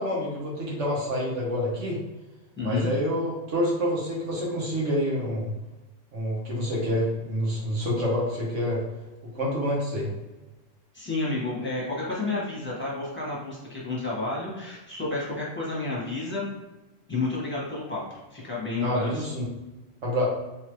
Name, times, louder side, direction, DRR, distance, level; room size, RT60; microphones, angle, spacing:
voice 1, 0.0-2.0 2.6-5.5 6.1-8.8 9.3-10.1 18.8-19.4 20.0-20.3, equal, 75° right, -3 dB, 1.5 m, -27 dB
voice 2, 2.6-2.9 10.9-16.4 17.1-19.3, left 3 dB, 10° left, -6 dB, 1.4 m, -31 dB
3.6 x 3.1 x 3.1 m, 1.1 s
omnidirectional pair, 1.3 m